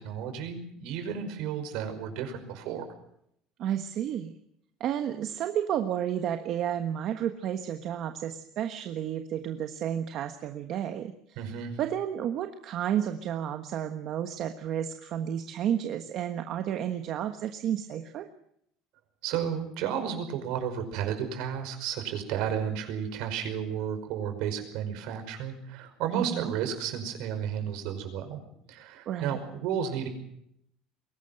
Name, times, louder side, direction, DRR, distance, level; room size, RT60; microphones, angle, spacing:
voice 1, 0.0-2.8 11.4-11.8 19.2-28.4 28.7-30.1, right 8 dB, 65° right, 7 dB, 5.4 m, -32 dB
voice 2, 3.6-4.3 4.8-18.3 26.1-26.5 29.1-29.4, right 10 dB, 45° right, 7 dB, 1.4 m, -31 dB
22.5 x 18.0 x 7.8 m, 0.73 s
cardioid pair, 155°, 0 cm